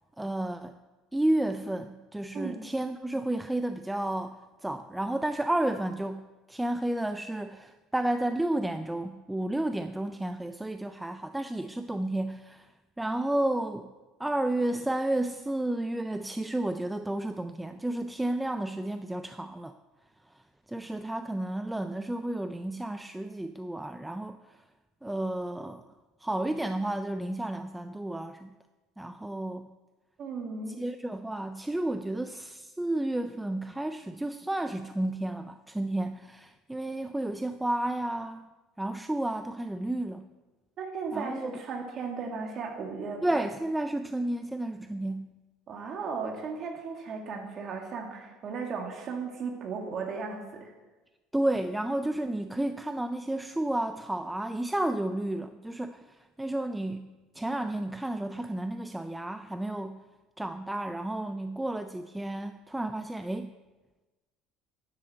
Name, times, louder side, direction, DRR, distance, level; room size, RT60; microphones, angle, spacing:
voice 1, 0.2-0.8 1.1-12.7 13.0-13.9 14.2-19.7 20.3-20.4 20.7-24.6 25.0-25.9 26.2-28.5 29.0-29.7 30.7-38.5 38.8-40.3 41.1-41.6 43.2-45.3 51.3-60.0 60.4-63.5, right 1 dB, 5° right, 8 dB, 0.3 m, -32 dB
voice 2, 2.3-2.7 30.2-30.8 40.8-43.2 45.7-50.7, right 5 dB, 35° right, 2 dB, 2.0 m, -36 dB
10.0 x 7.7 x 7.6 m, 1.2 s
cardioid pair, 175°, 0 cm